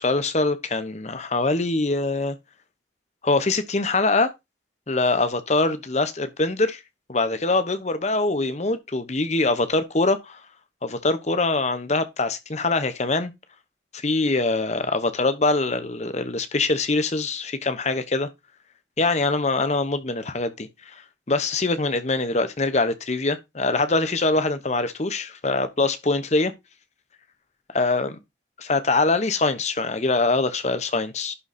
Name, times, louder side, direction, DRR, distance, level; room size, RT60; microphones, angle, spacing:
voice 1, 0.0-2.4 3.2-4.3 4.9-6.8 7.1-10.4 10.8-13.3 13.9-18.3 19.0-21.0 21.3-26.5 27.7-28.1 28.6-31.4, left 3 dB, 35° left, 0.9 m, -23 dB
11.0 x 3.9 x 4.2 m
head